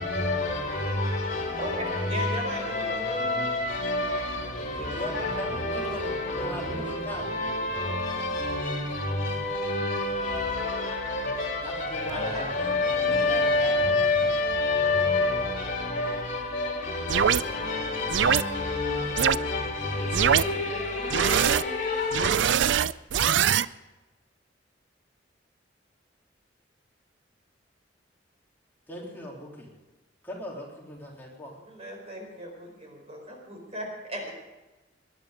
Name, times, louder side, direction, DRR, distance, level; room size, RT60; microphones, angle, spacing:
voice 1, 0.0-22.3, left 2 dB, 45° left, 3.9 m, -28 dB
voice 2, 1.6-3.5 4.4-4.9 12.1-12.5 13.3-13.8 15.3-15.6 31.6-34.3, equal, 35° right, 4.5 m, -38 dB
voice 3, 4.9-7.3 11.6-12.7 13.0-13.5 28.9-29.7 30.2-31.5, left 1 dB, 10° left, 3.5 m, -39 dB
sound 1, 17.1-17.4 18.1-18.4 19.2-19.4 20.1-20.4 21.1-21.6 22.1-23.6, right 8 dB, 75° right, 0.4 m, -22 dB
21.0 x 11.0 x 5.1 m
head